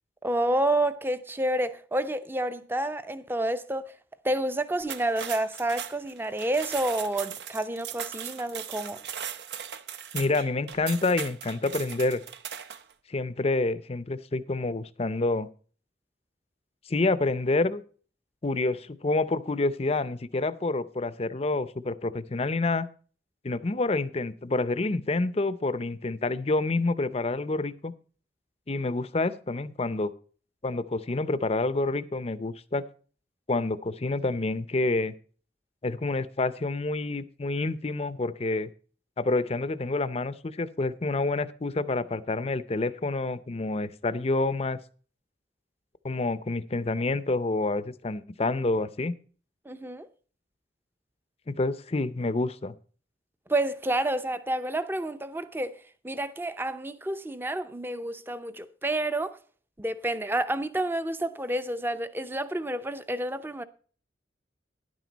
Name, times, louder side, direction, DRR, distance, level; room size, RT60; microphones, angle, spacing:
voice 1, 0.2-3.9 4.2-9.0 49.7-50.1 53.5-55.8 56.0-59.4 59.8-63.6, right 1 dB, 10° right, 0.6 m, -29 dB
sound 1, 4.8-12.9, right 8 dB, 65° right, 0.7 m, -38 dB
voice 2, 10.1-12.2 13.1-15.5 16.9-17.8 18.4-22.9 23.4-27.9 28.7-30.1 30.6-32.8 33.5-35.1 35.8-38.7 39.2-44.8 46.0-49.1 51.5-52.7, left 2 dB, 35° left, 0.6 m, -28 dB
11.0 x 9.3 x 4.0 m
head